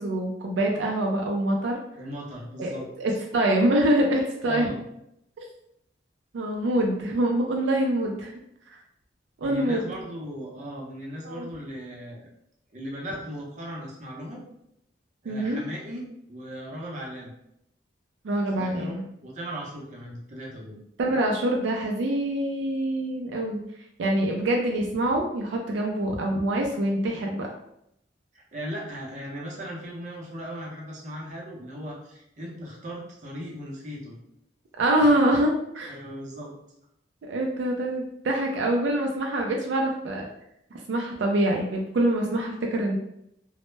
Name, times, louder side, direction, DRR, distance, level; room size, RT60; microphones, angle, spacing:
voice 1, 0.0-1.8 2.6-2.7 3.0-4.7 6.3-8.3 9.4-9.8 11.2-11.5 15.3-15.6 18.2-19.0 21.0-23.6 24.0-27.5 34.8-36.0 37.3-40.3 40.9-43.0, right 1 dB, 85° right, 1 dB, 0.4 m, -25 dB
voice 2, 2.0-2.8 3.1-3.2 4.5-4.8 9.4-12.3 12.7-14.4 15.2-17.3 18.5-20.8 28.3-34.2 35.9-36.5, equal, 45° right, -3 dB, 0.6 m, -37 dB
2.1 x 2.0 x 3.1 m, 0.77 s
head